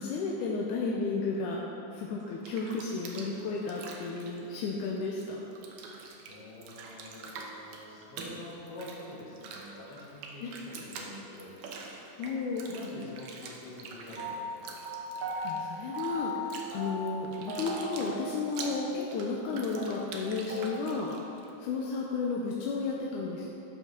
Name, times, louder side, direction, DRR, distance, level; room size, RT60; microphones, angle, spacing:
voice 1, 0.0-1.6 1.9-5.4 10.4-10.5 12.2-12.6 15.4-21.1 21.6-23.5, left 4 dB, 80° left, -3 dB, 2.2 m, -33 dB
Bathtub (filling or washing), 2.2-5.2 5.5-21.5, right 4 dB, 70° right, 2.0 m, -45 dB
voice 2, 6.3-11.7 12.7-14.7, left 2 dB, 55° left, -6 dB, 2.8 m, -46 dB
sound 1, 14.2-15.5 15.9-16.4 16.7-17.2 17.5-18.3 18.6-18.7 19.0-19.1 19.4-19.5 19.8-20.7, right 1 dB, 45° right, 1.4 m, -38 dB
12.5 x 5.5 x 5.2 m, 3.0 s
omnidirectional pair, 3.6 m